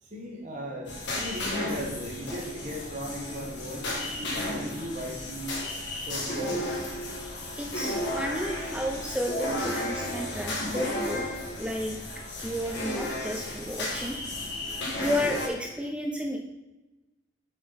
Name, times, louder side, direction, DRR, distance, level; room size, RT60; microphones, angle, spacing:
voice 1, 0.0-5.6 6.1-6.7, equal, 40° right, -1 dB, 1.4 m, -37 dB
sound 1, 0.9-15.5, left 1 dB, 65° left, 2.1 m, -33 dB
voice 2, 7.6-11.3 11.6-12.0 12.4-14.2 15.0-16.4, left 1 dB, 5° right, 2 dB, 0.5 m, -32 dB
7.1 x 6.4 x 4.1 m, 1.0 s
head